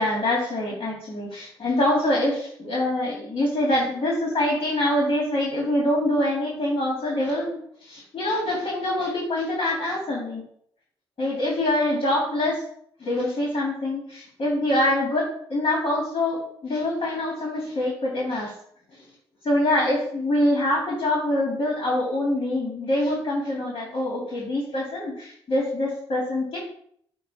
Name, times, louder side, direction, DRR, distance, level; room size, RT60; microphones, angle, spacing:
voice 1, 0.0-10.4 11.2-12.6 13.0-18.5 18.9-19.0 19.4-26.6, left 1 dB, 50° left, -4 dB, 3.2 m, -25 dB
9.3 x 3.3 x 4.6 m, 0.66 s
supercardioid pair, 50°, 11 cm